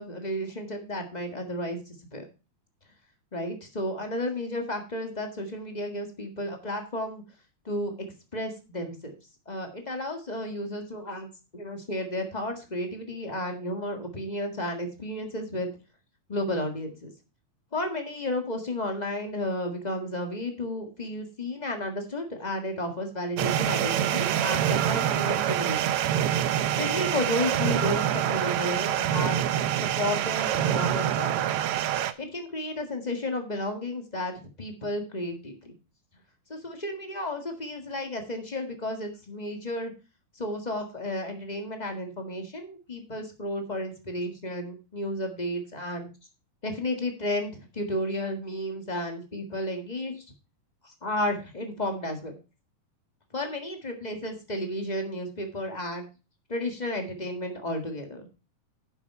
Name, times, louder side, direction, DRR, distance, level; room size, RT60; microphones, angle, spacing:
voice 1, 0.0-2.3 3.3-7.2 7.6-7.9 8.3-9.1 9.4-15.7 16.3-17.1 17.7-25.9 26.6-29.4 29.8-31.6 32.2-35.7 36.5-39.9 40.3-46.1 46.6-50.2 50.8-52.4 53.3-56.0 56.5-58.3, left 1 dB, 25° left, 4 dB, 1.0 m, -32 dB
sound 1, 23.4-32.1, right 11 dB, 85° right, 1.3 m, -26 dB
10.5 x 7.3 x 4.3 m, 0.31 s
omnidirectional pair, 3.5 m